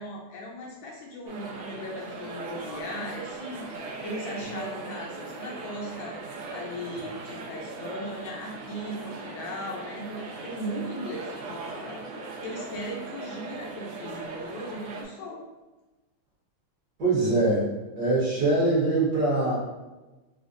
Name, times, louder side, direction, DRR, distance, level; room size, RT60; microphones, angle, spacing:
voice 1, 0.0-3.6 4.0-6.2 6.5-12.1 12.4-15.4, equal, 75° left, -2 dB, 1.3 m, -37 dB
sound 1, 1.3-15.0, right 3 dB, 75° right, 1.0 m, -39 dB
voice 2, 17.0-17.6 17.9-19.6, right 2 dB, 55° right, -7 dB, 1.3 m, -23 dB
4.9 x 2.0 x 2.5 m, 1.1 s
omnidirectional pair, 2.4 m